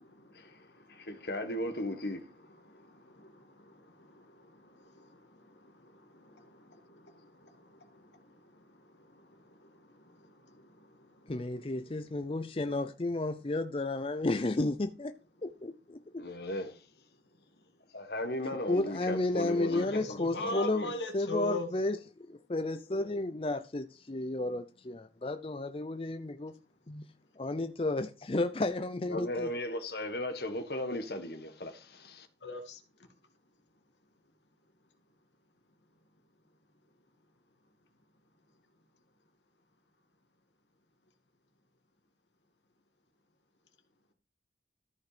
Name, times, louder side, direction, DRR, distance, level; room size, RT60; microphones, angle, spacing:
voice 1, 0.9-2.3 16.2-16.8 17.9-21.0 29.1-32.3, left 1 dB, 65° left, 1.6 m, -37 dB
voice 2, 11.3-15.1 15.4-16.2 18.7-22.0 22.3-26.6 26.9-27.0 27.4-29.5, left 2 dB, 30° left, 0.5 m, -32 dB
voice 3, 19.7-21.7 32.4-32.8, left 1 dB, 85° left, 2.1 m, -37 dB
14.0 x 5.5 x 5.0 m
head